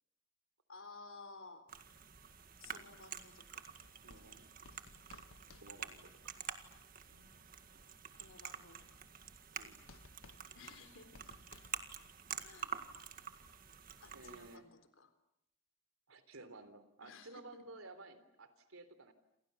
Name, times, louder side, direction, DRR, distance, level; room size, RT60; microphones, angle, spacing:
voice 1, 0.7-1.7 2.6-3.7 5.5-5.8 7.1-7.4 8.1-8.9 10.5-11.2 12.4-12.7 14.0-15.1 17.0-17.7, left 3 dB, 70° left, 9 dB, 3.8 m, -56 dB
sound 1, 1.7-14.6, right 7 dB, 40° right, 1.9 m, -48 dB
sound 2, 3.8-6.4 9.6-9.7 9.9-12.1 12.3-12.4, left 3 dB, 90° left, 1.5 m, -60 dB
voice 2, 4.0-4.5 5.6-6.1 7.7-7.8 9.6-9.8 14.1-14.6 16.1-19.1, right 2 dB, 85° right, 10 dB, 3.6 m, -54 dB
28.5 x 28.5 x 7.0 m, 0.81 s
head